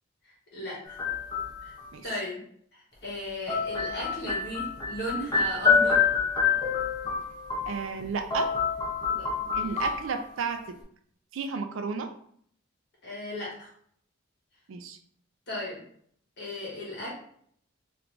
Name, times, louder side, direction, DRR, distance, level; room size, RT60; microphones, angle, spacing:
voice 1, 0.5-1.0 1.6-1.7 2.0-2.4 2.7-6.0 9.1-9.7 13.0-13.7 15.5-15.8 16.4-17.1, left 1 dB, 55° left, -4 dB, 1.4 m, -36 dB
sound 1, 0.9-1.8 3.5-8.1 8.3-10.4, left 5 dB, 20° left, 0.7 m, -27 dB
voice 2, 7.7-8.5 9.5-10.8 11.3-12.1 14.7-15.0, right 5 dB, 70° right, 7 dB, 0.4 m, -33 dB
3.3 x 2.9 x 2.5 m, 0.63 s
head